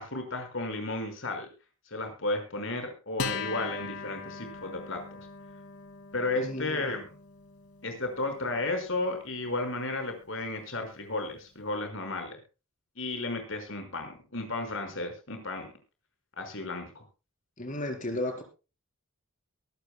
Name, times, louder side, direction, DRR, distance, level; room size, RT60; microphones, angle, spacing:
voice 1, 0.0-1.5 1.9-5.2 6.1-7.1 7.8-12.4 13.0-15.7 16.4-17.0, left 2 dB, 60° left, 6 dB, 5.4 m, -33 dB
Acoustic guitar, 3.2-10.0, left 5 dB, 80° left, 2.3 m, -41 dB
voice 2, 6.3-6.9 17.6-18.4, left 1 dB, 35° left, 4 dB, 4.5 m, -34 dB
23.5 x 12.0 x 2.3 m, 0.32 s
head